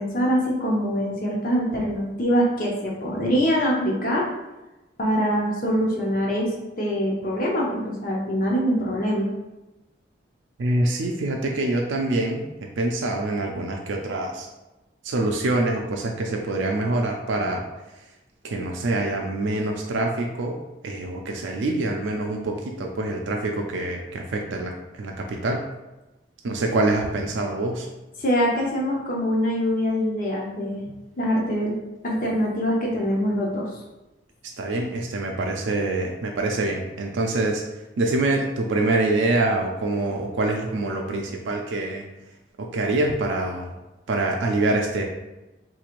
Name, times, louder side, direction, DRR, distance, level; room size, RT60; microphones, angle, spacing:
voice 1, 0.0-4.3 5.0-6.5 6.8-9.3 28.2-30.8 31.2-31.7 32.0-33.7, equal, 45° left, -2 dB, 0.7 m, -24 dB
voice 2, 10.6-12.5 12.8-14.5 15.0-17.6 18.4-20.6 20.8-25.6 26.4-27.9 34.6-42.1 42.6-43.8 44.1-45.0, right 2 dB, 90° right, 1 dB, 0.4 m, -25 dB
3.7 x 3.0 x 2.4 m, 1.0 s
head